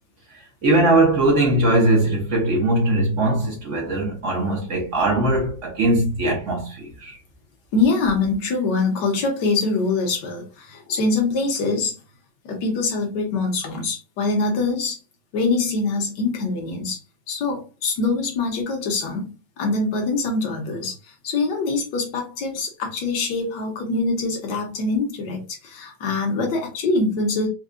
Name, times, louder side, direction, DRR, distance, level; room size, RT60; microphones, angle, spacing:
voice 1, 0.6-7.2, right 2 dB, 55° right, 0.9 m, -20 dB
voice 2, 7.7-12.0 12.4-15.0 15.3-17.0 17.3-27.5, left 3 dB, 65° left, 1.6 m, -24 dB
4.5 x 2.3 x 2.5 m
omnidirectional pair, 2.2 m